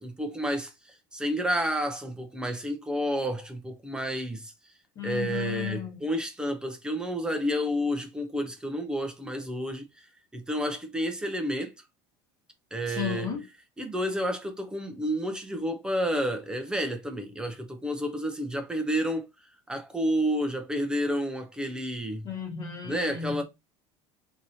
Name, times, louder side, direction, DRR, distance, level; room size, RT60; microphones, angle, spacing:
voice 1, 0.0-4.5 5.0-10.1 10.3-11.7 12.7-13.3 13.8-19.3 19.7-22.2 22.8-23.4, equal, 5° right, 0.5 m, -30 dB
voice 2, 4.9-6.0 12.9-13.4 22.2-23.4, left 8 dB, 30° left, 1.3 m, -34 dB
4.5 x 2.8 x 2.7 m
cardioid pair, 155°, 13 cm